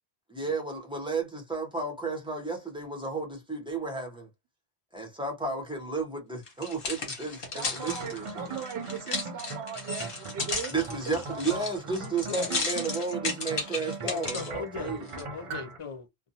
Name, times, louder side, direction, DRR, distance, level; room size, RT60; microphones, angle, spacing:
voice 1, 0.3-4.3 4.9-8.6 10.7-15.0, right 4 dB, 5° right, 0.7 m, -33 dB
sound 1, 6.5-14.5 15.1-15.2, left 3 dB, 60° left, 1.1 m, -34 dB
voice 2, 7.5-10.7 11.1-11.6, right 6 dB, 85° right, 0.8 m, -39 dB
sound 2, 7.7-15.8, right 4 dB, 55° right, 0.3 m, -40 dB
voice 3, 14.1-16.1, left 5 dB, 40° left, 0.5 m, -38 dB
2.5 x 2.2 x 2.6 m
omnidirectional pair, 1.1 m